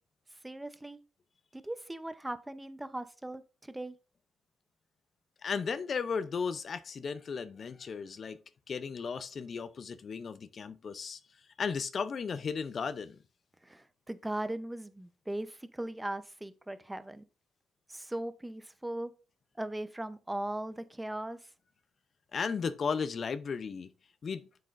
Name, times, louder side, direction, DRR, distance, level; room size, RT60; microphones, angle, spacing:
voice 1, 0.4-1.0 1.5-4.0 13.6-17.2 17.9-19.1 19.6-21.4, right 1 dB, 10° right, 0.7 m, -39 dB
voice 2, 5.4-8.4 8.7-11.2 11.6-13.2 22.3-23.9 24.2-24.5, left 5 dB, 45° left, 0.5 m, -35 dB
7.7 x 7.3 x 2.5 m
cardioid pair, 90°, 0 cm